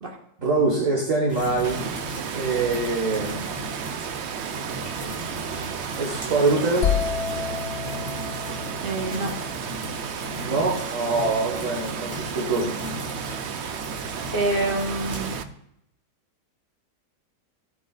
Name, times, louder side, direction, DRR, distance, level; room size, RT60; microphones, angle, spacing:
voice 1, 0.4-1.8 2.3-3.5 6.0-6.9 10.4-12.8, right 3 dB, 50° right, -2 dB, 1.9 m, -24 dB
sound 1, 1.3-15.4, left 1 dB, 15° right, 2.5 m, -37 dB
Water, 1.6-15.4, right 8 dB, 70° right, 0.6 m, -33 dB
sound 2, 6.8-10.6, left 7 dB, 80° left, 0.5 m, -30 dB
voice 2, 8.8-9.3 14.3-15.4, right 2 dB, 35° right, 0 dB, 1.7 m, -26 dB
16.0 x 7.6 x 2.4 m, 0.77 s
omnidirectional pair, 1.8 m